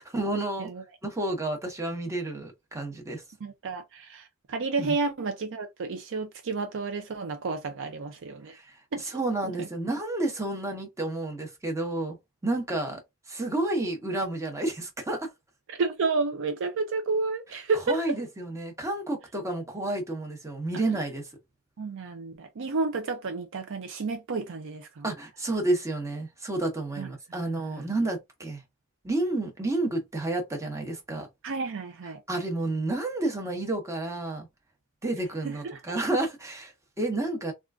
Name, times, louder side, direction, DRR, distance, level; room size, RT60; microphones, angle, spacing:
voice 1, 0.0-0.7 1.0-3.2 4.8-4.9 8.5-8.8 9.1-12.2 12.4-13.0 13.3-15.3 17.9-21.2 25.0-28.6 29.0-31.3 32.3-34.5 35.0-37.5, right 2 dB, 15° right, 0.9 m, -30 dB
voice 2, 3.4-8.5 8.9-9.2 9.6-9.7 15.7-18.0 21.8-25.1 27.0-27.1 27.4-27.9 31.4-32.2 35.4-35.8, right 4 dB, 55° right, 0.5 m, -31 dB
3.6 x 2.4 x 2.3 m
head